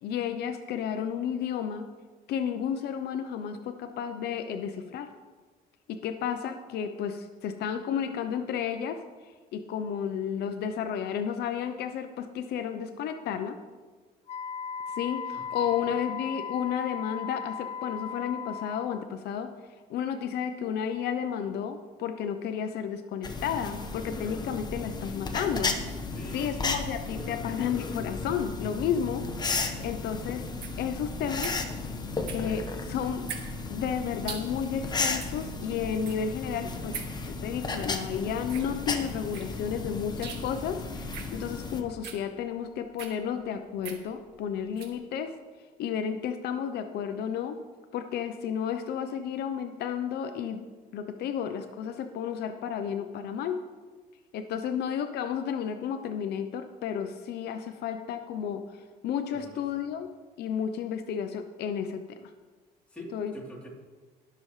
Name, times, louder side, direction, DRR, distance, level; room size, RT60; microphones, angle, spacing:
voice 1, 0.0-1.9 2.3-5.1 5.9-9.0 9.5-13.6 15.0-19.5 19.9-25.8 26.3-29.3 29.5-30.5 30.8-31.6 32.3-33.3 33.7-37.0 37.3-45.4 45.8-47.6 47.9-50.7 50.9-53.6 54.3-58.8 59.0-60.1 60.4-62.3 63.1-63.3, left 8 dB, 75° left, 8 dB, 0.7 m, -32 dB
Wind instrument woodwind instrument, 14.3-19.1, left 6 dB, 40° left, 0.4 m, -37 dB
voice 2, 15.3-15.9 26.1-26.5 59.3-59.9 62.9-63.7, equal, 5° left, -5 dB, 3.4 m, -45 dB
sound 1, 23.2-41.8, left 3 dB, 25° left, 1.1 m, -34 dB
sound 2, 30.6-45.0, right 7 dB, 80° right, 1.7 m, -44 dB
20.5 x 6.9 x 3.2 m, 1.4 s
cardioid pair, 110°, 17 cm